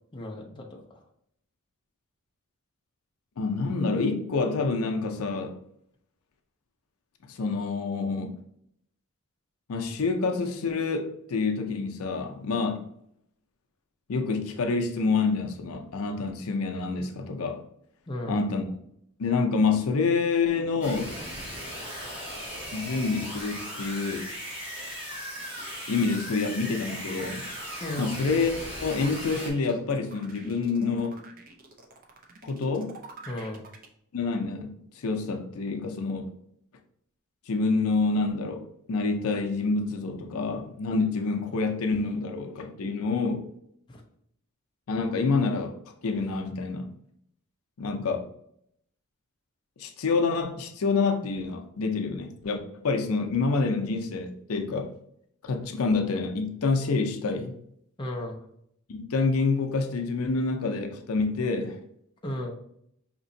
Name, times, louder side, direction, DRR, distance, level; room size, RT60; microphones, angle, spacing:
voice 1, 0.1-1.0 18.1-18.4 27.8-28.2 33.3-33.6 43.9-44.0 58.0-58.4 62.2-62.5, left 1 dB, 20° left, 0.5 m, -35 dB
voice 2, 3.4-5.6 7.2-8.4 9.7-12.8 14.1-17.6 18.3-18.8 19.2-21.1 22.7-24.3 25.9-27.5 28.0-28.5 28.8-31.2 32.4-32.9 34.1-36.3 37.5-43.5 44.9-45.8 46.0-46.9 47.8-48.3 49.8-54.9 55.4-57.5 58.9-61.8, left 4 dB, 75° left, 0.5 m, -27 dB
sound 1, 20.8-29.5, equal, 5° right, 1.3 m, -38 dB
sound 2, 24.8-33.9, right 3 dB, 40° right, 0.5 m, -47 dB
5.1 x 2.9 x 2.6 m
head